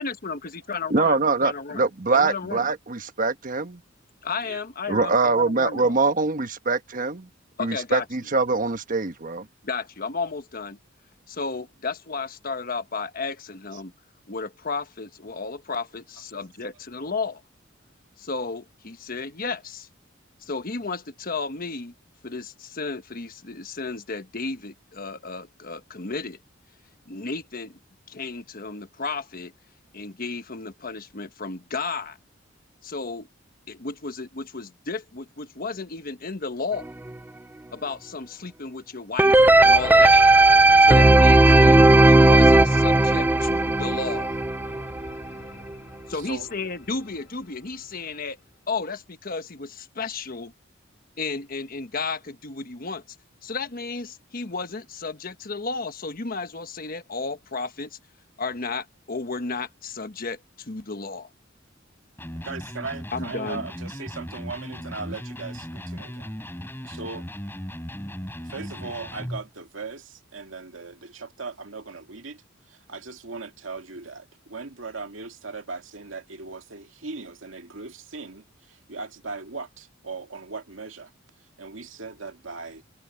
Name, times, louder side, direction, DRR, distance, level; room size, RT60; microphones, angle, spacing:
voice 1, 0.0-1.8 2.1-2.7 4.2-6.0 7.6-8.1 9.6-10.8 11.3-13.9 14.3-17.4 18.2-19.9 20.4-21.9 22.2-26.4 27.1-27.8 28.1-29.5 29.9-32.2 32.8-33.3 33.7-36.9 37.7-40.2 40.8-41.8 42.0-44.3 46.1-48.4 48.7-50.5 51.2-53.0 53.4-58.0 58.4-61.3 63.1-63.6, left 4 dB, 45° left, 1.2 m, -33 dB
voice 2, 0.9-3.8 4.9-7.3 7.6-9.5, right 3 dB, 45° right, 1.3 m, -23 dB
sound 1, 39.2-45.2 45.7-45.8, right 2 dB, 10° right, 0.3 m, -15 dB
sound 2, 39.3-48.2, left 2 dB, 75° left, 3.4 m, -39 dB
voice 3, 46.1-46.5 62.4-66.3 66.9-67.3 68.5-72.4 72.7-81.1 81.6-82.8, right 4 dB, 80° right, 2.2 m, -38 dB
Electric guitar, 62.2-69.5, equal, 10° left, 6.4 m, -37 dB
head